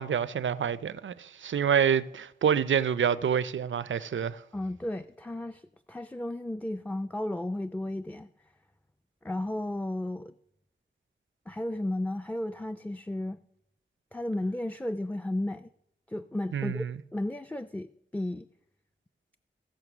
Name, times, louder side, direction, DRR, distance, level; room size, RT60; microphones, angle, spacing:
voice 1, 0.0-4.4 16.5-17.0, right 7 dB, 90° right, 0.5 m, -27 dB
voice 2, 4.5-5.6 5.9-8.3 9.2-10.3 11.5-13.4 14.1-15.7 16.1-16.9 17.1-18.5, left 1 dB, 10° left, 0.4 m, -33 dB
15.5 x 6.5 x 6.0 m
wide cardioid pair, 60°, 19 cm